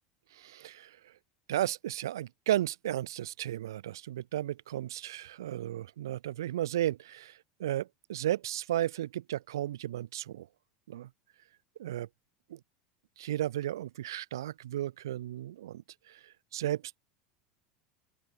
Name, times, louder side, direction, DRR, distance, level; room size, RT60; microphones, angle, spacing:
voice 1, 0.3-1.1 1.5-10.5 10.9-11.1 11.8-12.1 13.2-17.0, right 13 dB, 90° right, 1.4 m, -34 dB
open air
supercardioid pair, 110°, 2 cm